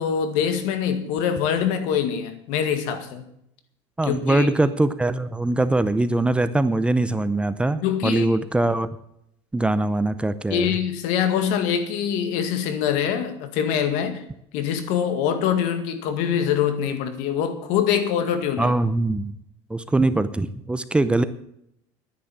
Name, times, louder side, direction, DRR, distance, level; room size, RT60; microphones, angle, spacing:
voice 1, 0.0-3.3 4.0-4.8 7.8-8.3 10.5-14.2 14.5-18.7, left 8 dB, 75° left, 2.0 m, -24 dB
voice 2, 4.0-8.9 9.5-10.7 18.6-19.3 19.7-21.2, right 2 dB, 10° right, 0.6 m, -22 dB
11.5 x 10.0 x 7.3 m
cardioid pair, 130°, 13 cm